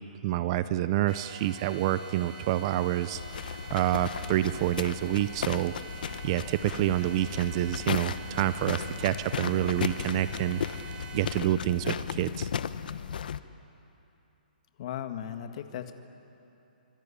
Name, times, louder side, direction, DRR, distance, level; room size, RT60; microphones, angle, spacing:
voice 1, 0.2-3.2 3.7-5.8 6.2-10.6 11.1-12.5, right 13 dB, 30° right, 14 dB, 0.7 m, -28 dB
sound 1, 1.1-11.4, right 5 dB, 55° right, 3.4 m, -45 dB
sound 2, 3.1-13.4, left 8 dB, 65° left, 1.0 m, -35 dB
voice 2, 14.8-15.9, left 10 dB, 40° left, 7 dB, 1.7 m, -36 dB
26.0 x 24.5 x 8.6 m, 2.9 s
hypercardioid pair, 160°, 5 cm